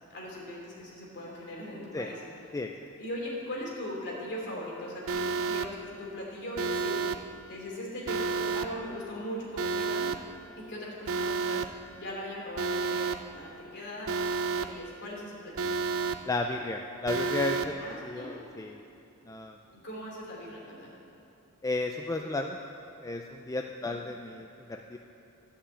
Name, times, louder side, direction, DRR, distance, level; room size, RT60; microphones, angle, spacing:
voice 1, 0.1-2.2 3.0-7.1 7.5-10.1 10.6-14.1 14.5-15.8 17.8-18.4 19.7-20.9 23.9-24.0, equal, 50° left, -4 dB, 3.0 m, -39 dB
Alarm, 5.1-5.7 6.6-7.2 8.1-8.7 9.6-10.2 11.1-11.7 12.6-13.2 14.1-14.7 15.6-16.2 17.1-17.7, right 4 dB, 65° right, 0.5 m, -30 dB
voice 2, 16.2-17.8 18.0-18.8 19.3-19.6 21.6-22.6 23.0-25.0, left 2 dB, 15° left, 3 dB, 0.4 m, -33 dB
12.0 x 5.8 x 8.2 m, 2.9 s
head